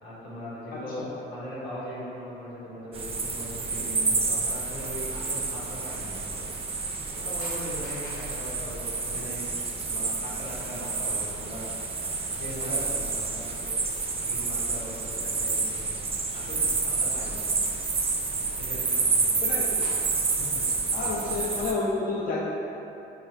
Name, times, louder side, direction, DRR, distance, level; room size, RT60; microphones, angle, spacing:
voice 1, 0.0-6.4 7.1-9.5 9.9-11.7 12.4-13.8 14.2-15.9 16.3-17.4 18.6-19.3 20.3-20.6, left 1 dB, 85° left, -10 dB, 1.3 m, -39 dB
voice 2, 0.7-1.1 7.4-7.5 19.4-19.9 20.9-22.5, left 3 dB, 45° left, -5 dB, 0.5 m, -30 dB
sound 1, 2.9-21.7, right 4 dB, 30° right, 0.4 m, -29 dB
4.6 x 2.0 x 3.1 m, 2.9 s
cardioid pair, 90°, 20 cm